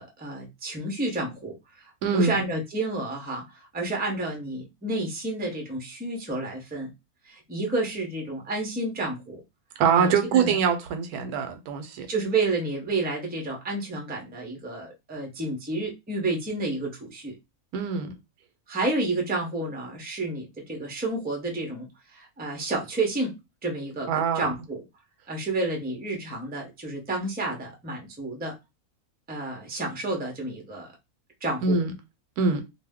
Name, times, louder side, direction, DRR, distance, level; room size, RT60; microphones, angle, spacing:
voice 1, 0.0-6.9 7.2-9.4 9.9-10.5 12.1-17.3 18.7-21.9 22.1-23.3 23.6-24.8 25.3-28.5 29.3-30.9 31.4-31.8, right 2 dB, 10° right, 0.4 m, -30 dB
voice 2, 2.0-2.5 9.8-12.1 17.7-18.1 24.1-24.5 31.6-31.9 32.4-32.6, right 6 dB, 85° right, 1.1 m, -24 dB
2.7 x 2.1 x 3.5 m
omnidirectional pair, 1.5 m